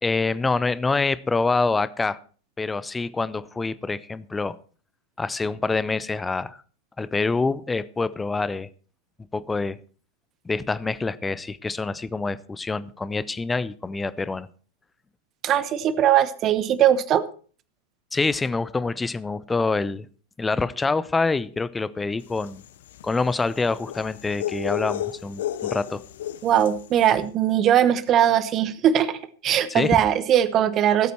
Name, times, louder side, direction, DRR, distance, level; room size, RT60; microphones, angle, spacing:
voice 1, 0.0-2.2 2.6-4.6 5.2-6.6 7.0-8.7 9.3-9.8 10.4-14.5 18.1-20.1 20.4-22.6 23.0-26.0 29.7-30.0, left 3 dB, 10° left, 17 dB, 0.7 m, -26 dB
voice 2, 15.4-17.2 26.4-29.2 29.4-31.1, right 10 dB, 30° right, 16 dB, 1.0 m, -20 dB
Howler Monkey call on the Yucatan Peninsula, 22.3-26.9, left 12 dB, 60° left, 0.6 m, -32 dB
18.0 x 8.2 x 4.4 m, 0.41 s
figure-of-eight pair, 90°, 0 cm